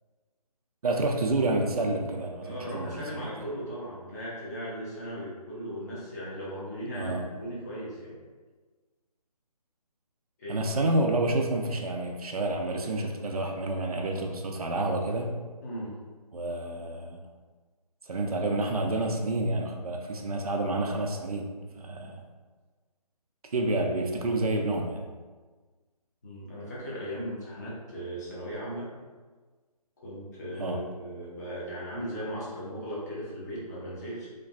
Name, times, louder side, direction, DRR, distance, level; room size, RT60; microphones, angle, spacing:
voice 1, 0.8-3.3 6.9-7.3 10.5-15.4 16.3-17.2 18.1-21.5 21.8-22.2 23.5-25.0 30.6-30.8, right 2 dB, 65° right, 2 dB, 0.4 m, -29 dB
voice 2, 2.4-7.1 7.4-8.1 10.4-10.7 15.6-15.9 26.2-28.9 30.0-34.3, equal, 25° left, -8 dB, 0.7 m, -37 dB
2.4 x 2.2 x 2.3 m, 1.4 s
figure-of-eight pair, 150°, 20 cm